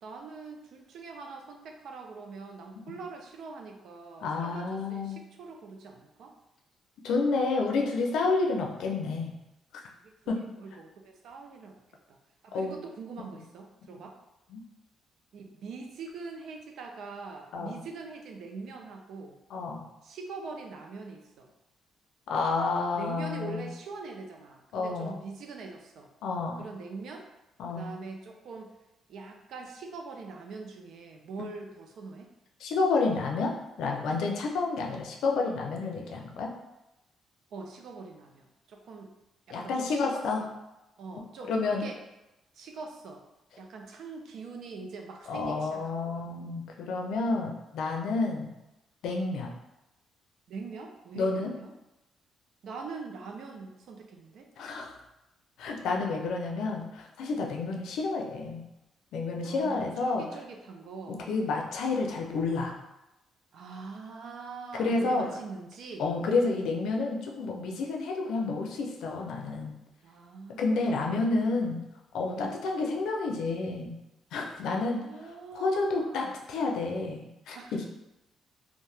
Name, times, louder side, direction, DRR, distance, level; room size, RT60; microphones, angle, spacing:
voice 1, 0.0-6.3 10.0-11.8 12.1-12.2 12.4-14.1 15.3-19.4 20.0-21.5 23.0-26.1 26.6-27.3 27.7-28.7 29.1-32.3 37.5-39.1 39.5-40.5 41.0-42.0 42.5-43.2 43.6-46.3 48.1-48.3 50.5-51.7 52.6-54.5 59.4-61.2 63.5-66.1 70.0-71.6 72.3-72.6 74.6-76.3 77.5-77.7, right 4 dB, 70° right, 3 dB, 0.4 m, -43 dB
voice 2, 4.2-5.2 7.0-9.3 10.3-10.4 12.5-12.8 14.5-14.6 17.5-17.8 19.5-19.8 22.3-23.7 24.7-25.2 26.2-26.6 27.6-27.9 32.6-33.5 33.8-36.5 39.5-40.4 41.5-41.8 45.3-48.5 49.0-49.5 51.2-51.5 54.6-54.9 55.6-58.6 59.1-60.2 61.1-62.7 64.7-65.3 66.0-69.7 70.6-71.8 72.1-73.9 74.3-75.0 75.5-77.9, left 3 dB, 80° left, 1 dB, 0.5 m, -30 dB
2.7 x 2.1 x 3.2 m, 0.94 s
cardioid pair, 90°, 0 cm